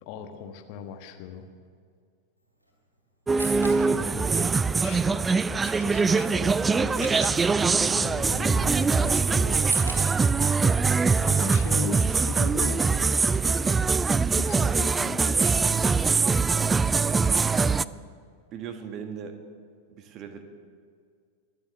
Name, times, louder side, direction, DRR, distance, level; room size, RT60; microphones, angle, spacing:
voice 1, 0.0-1.5 3.9-10.0 11.1-14.0 14.4-15.7, left 7 dB, 45° left, 6 dB, 1.3 m, -39 dB
Camera, 2.4-12.2, equal, 85° right, 3.5 m, -47 dB
sound 1, 3.3-17.8, right 4 dB, 15° right, 0.3 m, -23 dB
voice 2, 3.8-4.2 17.5-17.9 18.5-19.4 19.9-20.4, right 7 dB, 35° right, 6 dB, 1.6 m, -39 dB
23.0 x 7.9 x 7.0 m, 2.1 s
figure-of-eight pair, 90°, 0 cm